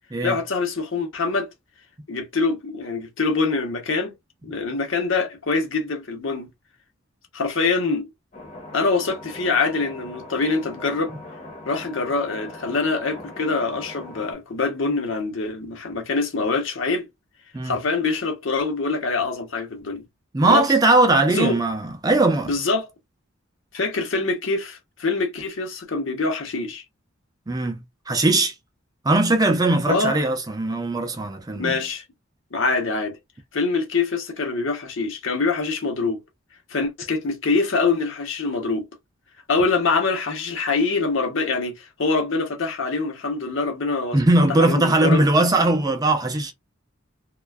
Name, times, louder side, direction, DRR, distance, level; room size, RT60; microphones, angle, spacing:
voice 1, 0.2-1.5 2.1-4.1 4.4-6.5 7.3-8.1 8.7-11.1 11.7-17.1 17.6-20.0 20.5-20.7 21.3-21.6 22.5-22.9 23.7-26.8 29.9-30.2 31.5-32.0 32.5-33.2 33.5-36.2 36.7-38.8 39.5-44.2 44.6-45.3, left 4 dB, 70° left, 0.8 m, -24 dB
sound 1, 8.3-14.3, left 1 dB, 35° left, 0.7 m, -40 dB
voice 2, 20.3-22.5 27.5-28.5 29.0-31.8 44.1-46.5, right 2 dB, 20° right, 0.4 m, -20 dB
2.4 x 2.3 x 2.2 m
head